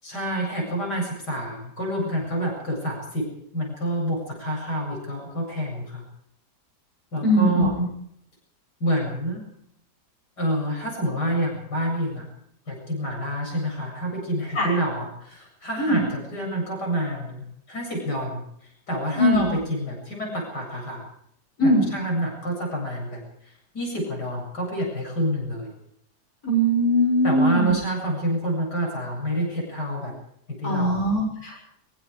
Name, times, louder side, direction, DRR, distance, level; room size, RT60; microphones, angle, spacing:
voice 1, 0.0-3.3 3.5-6.0 7.1-7.7 8.8-9.4 10.4-12.2 12.7-21.0 21.6-23.2 23.7-25.7 27.2-30.1 30.5-31.0, right 1 dB, 80° left, 0 dB, 8.4 m, -28 dB
voice 2, 7.2-7.7 14.5-14.7 15.8-16.1 19.2-19.5 21.6-21.9 26.4-27.7 30.6-31.6, equal, 60° left, -3 dB, 7.6 m, -21 dB
23.5 x 23.0 x 4.9 m, 0.70 s
omnidirectional pair, 1.8 m